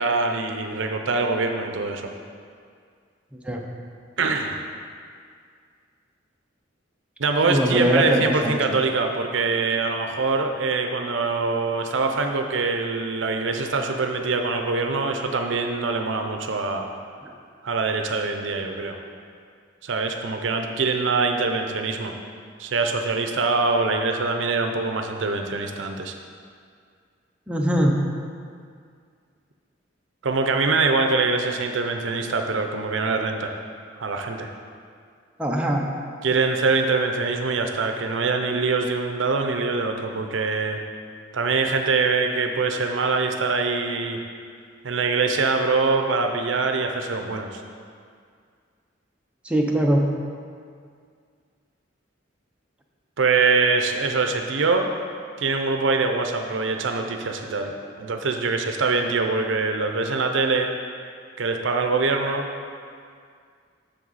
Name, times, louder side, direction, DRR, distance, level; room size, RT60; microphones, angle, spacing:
voice 1, 0.0-2.1 4.2-4.6 7.2-16.9 17.6-19.0 19.8-22.1 22.6-26.1 30.2-33.5 34.0-34.5 36.2-40.8 41.3-44.2 44.8-47.6 53.2-54.9 55.4-60.7 61.4-62.4, right 4 dB, 75° right, 5 dB, 0.6 m, -24 dB
voice 2, 7.5-8.6 27.5-28.0 35.4-35.8 49.4-50.1, equal, 5° right, -1 dB, 0.7 m, -21 dB
7.6 x 6.6 x 4.1 m, 2.2 s
head